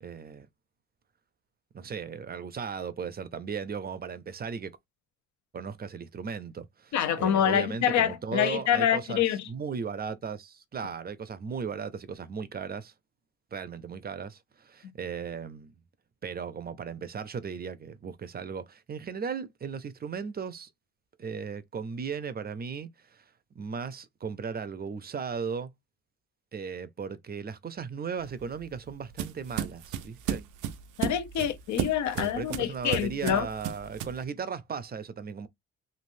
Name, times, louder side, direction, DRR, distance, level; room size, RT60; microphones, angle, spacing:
voice 1, 0.0-0.5 1.7-4.8 5.5-9.2 9.5-12.9 13.5-15.8 16.2-20.7 21.2-23.2 23.6-25.7 26.5-30.4 32.1-35.5, right 6 dB, 30° right, 0.5 m, -36 dB
voice 2, 6.9-9.5 31.0-33.5, left 10 dB, 70° left, 0.8 m, -26 dB
sound 1, 28.2-34.2, right 9 dB, 85° right, 0.5 m, -34 dB
3.2 x 2.5 x 2.6 m
cardioid pair, 90°, 30 cm